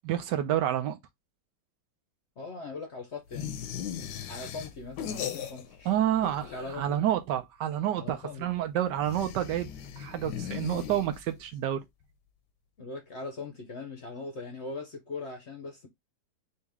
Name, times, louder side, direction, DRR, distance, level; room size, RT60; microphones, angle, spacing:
voice 1, 0.0-1.0 5.8-11.8, right 11 dB, 75° right, 1.2 m, -29 dB
voice 2, 2.4-5.9 6.4-7.0 8.0-8.5 12.8-15.9, left 3 dB, 50° left, 0.8 m, -40 dB
sound 1, 3.3-5.9 6.1-7.0 9.0-11.5, left 9 dB, 75° left, 1.2 m, -38 dB
4.0 x 2.8 x 3.4 m
omnidirectional pair, 2.0 m